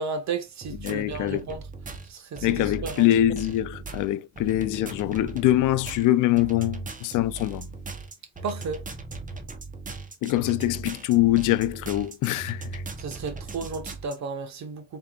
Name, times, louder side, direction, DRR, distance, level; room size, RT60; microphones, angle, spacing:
voice 1, 0.0-1.6 2.0-2.5 2.8-3.0 8.4-8.8 13.0-15.0, right 4 dB, 65° right, 1.3 m, -33 dB
sound 1, 0.6-14.2, right 3 dB, 25° right, 1.0 m, -38 dB
voice 2, 0.8-1.5 2.4-7.7 10.2-12.8, left 14 dB, 85° left, 0.5 m, -24 dB
4.5 x 3.5 x 2.5 m
cardioid pair, 90°, 30 cm